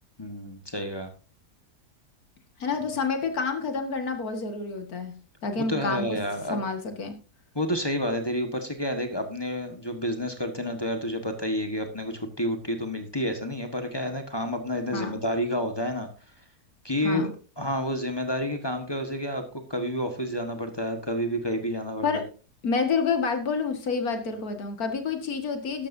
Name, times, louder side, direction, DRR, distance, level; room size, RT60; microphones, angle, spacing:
voice 1, 0.2-1.1 5.7-6.6 7.5-16.1 16.8-17.3 17.6-22.2, equal, 15° left, 5 dB, 1.3 m, -29 dB
voice 2, 2.6-5.1 5.4-6.2 6.5-7.1 14.9-15.2 17.0-17.3 22.0-22.2 22.6-25.9, left 4 dB, 60° left, 6 dB, 2.3 m, -28 dB
13.0 x 12.0 x 2.7 m, 0.36 s
omnidirectional pair, 1.8 m